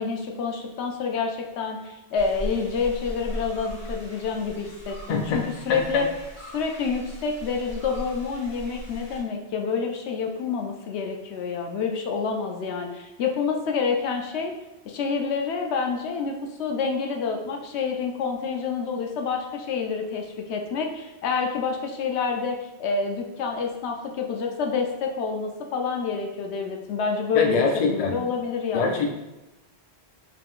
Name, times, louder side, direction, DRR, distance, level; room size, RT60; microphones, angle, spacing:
voice 1, 0.0-6.1 6.5-14.5 14.9-29.1, left 5 dB, 80° left, 2 dB, 0.9 m, -28 dB
sound 1, 2.1-9.2, equal, 15° left, 1.2 m, -38 dB
voice 2, 5.1-5.4 5.7-5.8 27.3-28.2 28.7-29.1, left 4 dB, 50° left, 3 dB, 0.4 m, -23 dB
3.8 x 3.7 x 2.4 m, 0.97 s
omnidirectional pair, 1.1 m